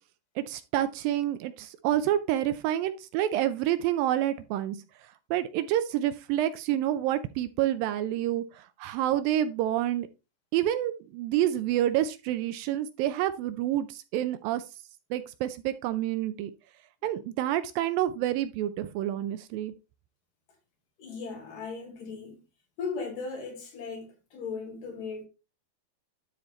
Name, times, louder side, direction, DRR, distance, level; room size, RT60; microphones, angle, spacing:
voice 1, 0.4-10.1 10.5-14.6 15.1-16.5 17.0-19.7, right 12 dB, 80° right, 2.2 m, -28 dB
voice 2, 21.0-22.4 22.8-25.3, left 4 dB, 65° left, 3.5 m, -37 dB
12.0 x 4.3 x 3.2 m
omnidirectional pair, 4.3 m